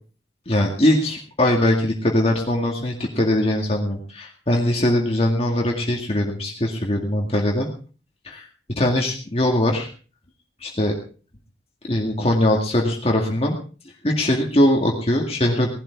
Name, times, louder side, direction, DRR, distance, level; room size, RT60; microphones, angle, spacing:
voice 1, 0.5-7.7 8.2-8.5 8.8-9.9 10.6-10.9 11.8-13.6 14.0-15.7, left 1 dB, 35° left, 1 dB, 2.2 m, -21 dB
18.0 x 12.5 x 4.7 m, 0.39 s
head